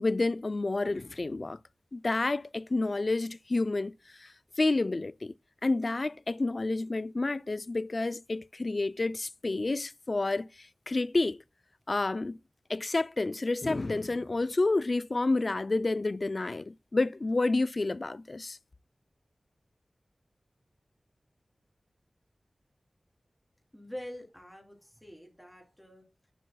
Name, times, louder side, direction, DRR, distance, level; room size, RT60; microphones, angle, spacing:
voice 1, 0.0-1.6 1.9-5.3 5.6-11.4 11.9-12.4 12.7-18.6, left 2 dB, 50° left, 0.3 m, -29 dB
voice 2, 23.7-26.1, left 1 dB, ahead, 3.8 m, -45 dB
11.5 x 7.3 x 2.3 m
wide cardioid pair, 70°, 0 cm